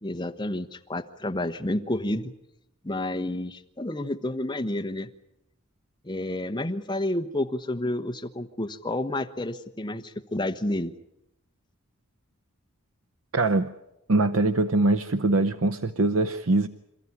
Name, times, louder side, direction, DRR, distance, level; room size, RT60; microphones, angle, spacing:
voice 1, 0.0-2.3 2.8-5.1 6.0-10.9, left 1 dB, 20° left, 7 dB, 1.1 m, -30 dB
voice 2, 13.3-13.7 14.1-16.7, right 2 dB, 70° right, 11 dB, 0.8 m, -23 dB
27.5 x 14.5 x 9.7 m, 0.87 s
head